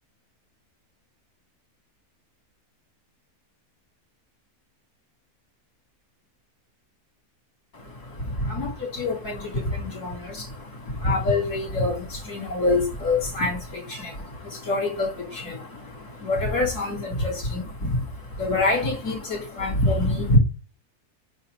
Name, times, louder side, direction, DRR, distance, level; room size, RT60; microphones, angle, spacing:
voice 1, 7.7-20.4, left 2 dB, 85° left, 0 dB, 3.8 m, -26 dB
9.0 x 3.0 x 5.3 m, 0.28 s
omnidirectional pair, 1.6 m